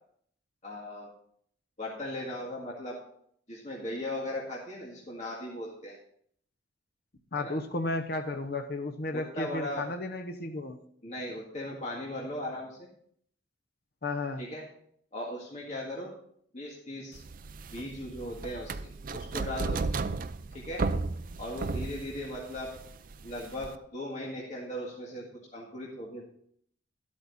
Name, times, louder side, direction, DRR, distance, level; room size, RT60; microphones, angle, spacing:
voice 1, 0.6-1.1 1.8-3.0 3.5-6.0 7.4-7.5 9.1-9.8 11.0-12.9 14.4-14.7 15.1-16.1 16.5-17.2 17.7-19.8 20.5-20.8 21.4-22.7 23.2-25.2 25.5-26.3, left 1 dB, 40° left, -4 dB, 1.9 m, -38 dB
voice 2, 7.3-10.8 14.0-14.4, left 2 dB, 55° left, 5 dB, 0.8 m, -33 dB
sound 1, 17.2-23.8, right 3 dB, 50° right, 0.5 m, -34 dB
12.5 x 8.5 x 4.1 m, 0.65 s
head